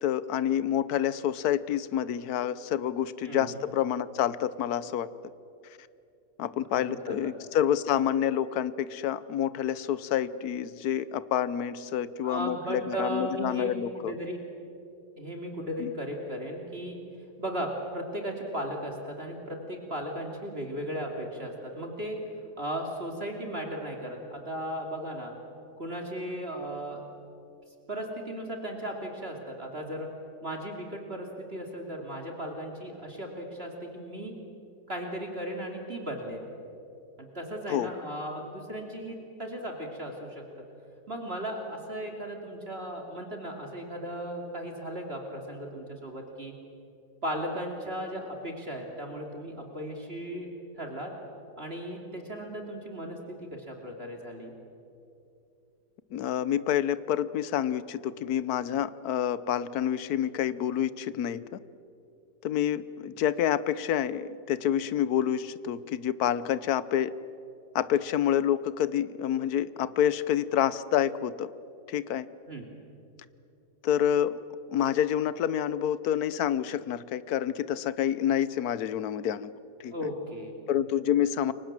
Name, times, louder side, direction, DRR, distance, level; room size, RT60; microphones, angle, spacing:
voice 1, 0.0-5.1 6.4-14.1 15.8-15.9 37.7-37.9 56.1-61.6 62.4-67.1 67.7-71.5 71.9-72.3 73.8-74.4 74.7-79.5 79.8-79.9 80.7-81.5, left 10 dB, 65° left, 16 dB, 1.2 m, -28 dB
voice 2, 3.2-3.6 6.7-7.3 12.2-14.4 15.2-17.0 17.4-22.2 22.6-25.3 25.8-27.1 27.9-30.1 30.4-34.3 34.9-36.5 37.2-40.4 41.1-46.5 47.2-50.5 50.8-51.1 51.6-54.5 72.5-72.7 79.9-80.5, equal, 35° right, 2 dB, 3.0 m, -36 dB
29.0 x 24.0 x 7.5 m, 2.7 s
omnidirectional pair, 1.9 m